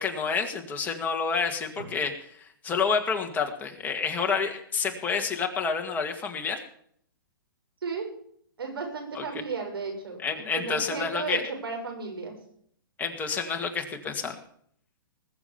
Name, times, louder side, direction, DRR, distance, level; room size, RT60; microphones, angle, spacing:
voice 1, 0.0-2.1 2.4-6.6 9.1-9.2 10.2-11.4 13.0-14.4, left 5 dB, 15° left, 4 dB, 1.9 m, -29 dB
voice 2, 8.6-10.2 10.5-12.4, right 4 dB, 85° right, 3 dB, 7.0 m, -34 dB
20.5 x 7.3 x 7.1 m, 0.64 s
hypercardioid pair, 150°, 12 cm